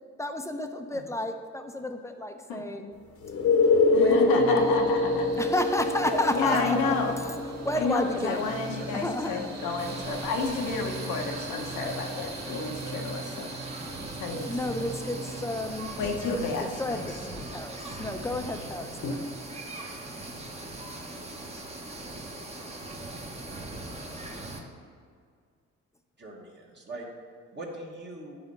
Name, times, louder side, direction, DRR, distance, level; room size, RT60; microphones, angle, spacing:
voice 1, 0.2-3.0 3.9-4.8 5.4-7.3 7.6-8.6 8.9-9.5 14.4-15.9 16.3-19.3, left 1 dB, 10° left, 6 dB, 0.6 m, -32 dB
sound 1, 3.2-14.8 19.0-19.1, left 3 dB, 50° left, 1.0 m, -28 dB
voice 2, 3.9-5.3 6.3-7.1 7.8-13.8 14.2-14.5 16.0-17.0, left 4 dB, 90° left, 2 dB, 1.1 m, -30 dB
sound 2, 4.3-16.3, right 4 dB, 60° right, 1.2 m, -41 dB
sound 3, 9.8-24.6, right 2 dB, 20° right, 1.1 m, -40 dB
voice 3, 26.2-27.0 27.5-28.4, right 2 dB, 35° right, -1 dB, 1.5 m, -38 dB
9.6 x 4.3 x 5.4 m, 2.1 s
cardioid pair, 90°, 30 cm